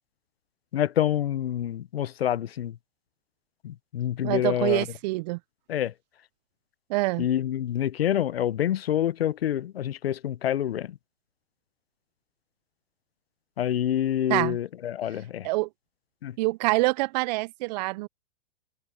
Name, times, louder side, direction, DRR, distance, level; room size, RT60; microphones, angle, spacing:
voice 1, 0.7-2.8 3.6-4.9 5.7-5.9 7.2-11.0 13.6-15.5 16.2-16.4, left 11 dB, 80° left, 0.9 m, -27 dB
voice 2, 4.2-5.4 6.9-7.3 14.3-14.6 15.4-15.7 16.4-18.1, right 22 dB, 45° right, 0.5 m, -26 dB
hypercardioid pair, 120°, 30 cm